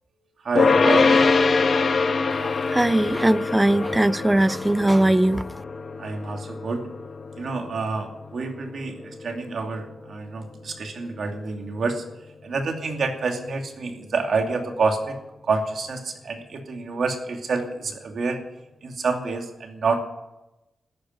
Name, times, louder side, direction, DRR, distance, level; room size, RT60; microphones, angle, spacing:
voice 1, 0.4-1.2 6.0-6.9 7.4-12.0 12.4-18.4 18.8-20.0, right 4 dB, 65° right, 2.7 m, -28 dB
sound 1, 0.6-11.9, left 4 dB, 50° left, 1.1 m, -24 dB
voice 2, 2.4-5.4, right 1 dB, 10° right, 0.5 m, -20 dB
14.0 x 10.5 x 9.5 m
cardioid pair, 100°, 0 cm